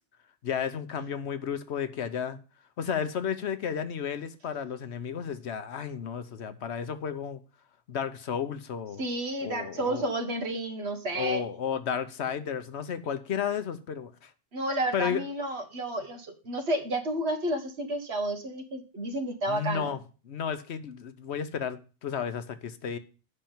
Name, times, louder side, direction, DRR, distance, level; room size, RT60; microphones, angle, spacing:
voice 1, 0.4-2.4 2.8-7.4 7.9-9.0 9.4-10.0 11.1-14.3 14.9-15.2 19.5-20.0 20.2-23.0, left 7 dB, 80° left, 1.1 m, -32 dB
voice 2, 9.0-11.4 14.5-19.9, right 1 dB, 70° right, 1.8 m, -31 dB
8.6 x 5.8 x 7.1 m
omnidirectional pair, 1.1 m